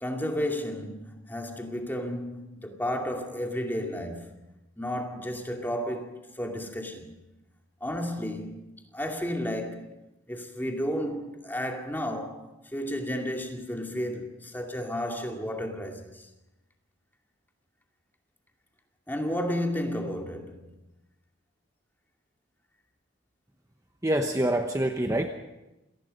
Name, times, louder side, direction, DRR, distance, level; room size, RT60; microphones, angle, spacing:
voice 1, 0.0-4.3 4.8-7.1 7.8-9.9 10.3-12.5 12.7-16.3 19.1-20.7, equal, 10° left, 2.4 m, -32 dB
voice 2, 24.0-25.3, right 1 dB, 15° right, 1.0 m, -25 dB
27.0 x 19.0 x 5.4 m
head